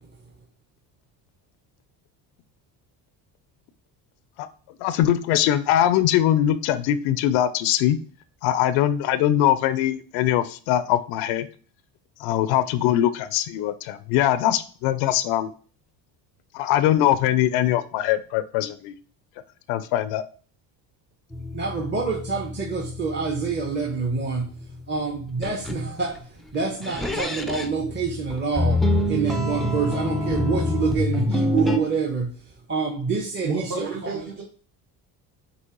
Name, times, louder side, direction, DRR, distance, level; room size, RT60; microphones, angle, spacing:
voice 1, 4.8-8.0 8.4-11.5 12.2-15.5 16.5-18.9 19.7-20.2, left 12 dB, 75° left, 13 dB, 0.5 m, -22 dB
sound 1, 21.3-25.0 25.3-26.2 26.8-31.8, left 2 dB, ahead, 0.4 m, -27 dB
voice 2, 21.5-24.5 24.9-32.3 32.7-34.2, right 5 dB, 25° right, 1 dB, 0.8 m, -27 dB
voice 3, 33.4-34.4, right 4 dB, 50° right, -2 dB, 1.4 m, -31 dB
5.4 x 2.9 x 2.9 m, 0.41 s
supercardioid pair, 90°, 44 cm